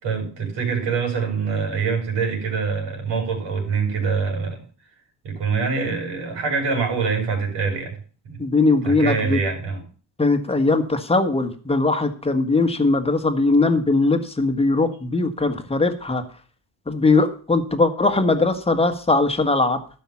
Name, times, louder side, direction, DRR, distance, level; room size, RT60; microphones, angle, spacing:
voice 1, 0.0-4.6 5.2-8.0 8.2-8.4 8.8-9.8, right 5 dB, 70° right, 3 dB, 5.7 m, -24 dB
voice 2, 8.4-9.4 10.2-16.2 16.8-19.8, left 3 dB, 15° left, 6 dB, 1.5 m, -20 dB
12.5 x 5.8 x 7.2 m, 0.40 s
cardioid pair, 115°, 44 cm